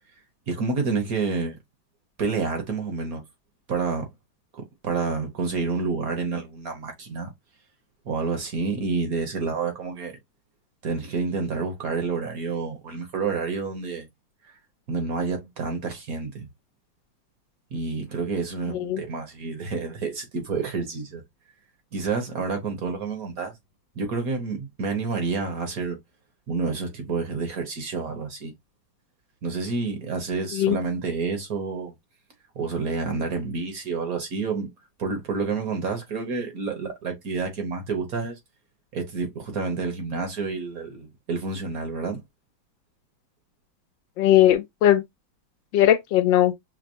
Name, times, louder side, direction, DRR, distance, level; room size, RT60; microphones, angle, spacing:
voice 1, 0.5-1.6 2.2-3.2 3.7-4.1 4.5-7.3 8.1-10.2 10.8-14.1 14.9-16.5 17.7-21.2 21.9-23.5 24.0-26.0 26.5-28.5 29.4-31.9 32.6-34.7 35.0-38.4 38.9-42.2, right 4 dB, 55° right, 1.2 m, -29 dB
voice 2, 44.2-45.0 45.7-46.5, left 12 dB, 80° left, 1.3 m, -19 dB
6.0 x 2.0 x 2.5 m
omnidirectional pair, 2.1 m